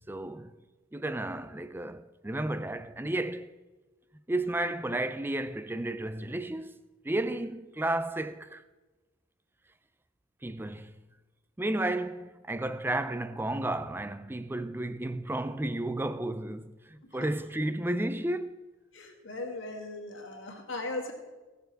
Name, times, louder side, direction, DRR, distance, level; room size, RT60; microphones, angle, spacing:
voice 1, 0.1-0.5 0.9-3.5 4.3-6.8 7.0-8.6 10.4-10.9 11.6-18.6, right 1 dB, 10° right, 0.4 m, -32 dB
voice 2, 18.9-21.1, left 2 dB, 60° left, 2.1 m, -38 dB
18.0 x 6.9 x 4.7 m
head